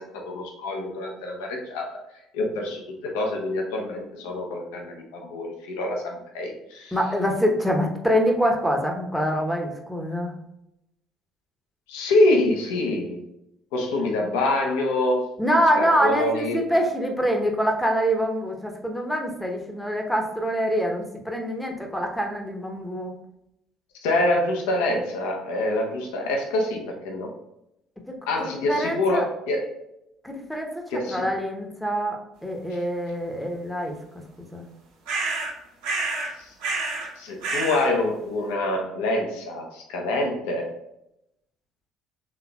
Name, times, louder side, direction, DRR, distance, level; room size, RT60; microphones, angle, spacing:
voice 1, 0.0-1.9 2.3-7.0 11.9-13.2 13.7-15.3 15.7-16.6 24.0-27.3 28.3-29.7 30.9-31.3 36.4-36.5 37.2-40.7, left 2 dB, 65° left, 1 dB, 0.8 m, -26 dB
voice 2, 6.9-10.3 15.4-23.1 28.7-29.2 30.2-32.2 32.4-34.0 34.4-34.7, equal, 5° left, 2 dB, 0.9 m, -25 dB
sound 1, 35.1-35.5 35.8-36.3 36.6-37.1 37.4-37.9, right 3 dB, 65° right, 1.2 m, -28 dB
5.7 x 3.7 x 2.3 m, 0.83 s
figure-of-eight pair, 55°, 0 cm